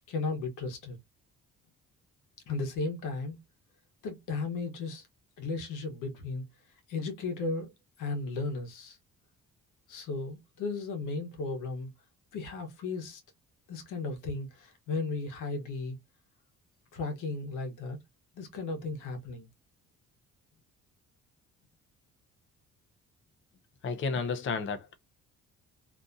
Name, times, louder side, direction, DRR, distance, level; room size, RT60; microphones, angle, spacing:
voice 1, 0.1-1.0 2.5-3.4 4.0-5.0 5.4-6.4 6.9-7.7 8.0-9.0 9.9-11.9 12.3-13.2 13.7-16.0 16.9-18.0 18.3-19.5, left 3 dB, 85° left, 1.0 m, -35 dB
voice 2, 23.8-24.9, left 5 dB, 40° left, 0.6 m, -32 dB
2.7 x 2.6 x 2.2 m
cardioid pair, 90°, 30 cm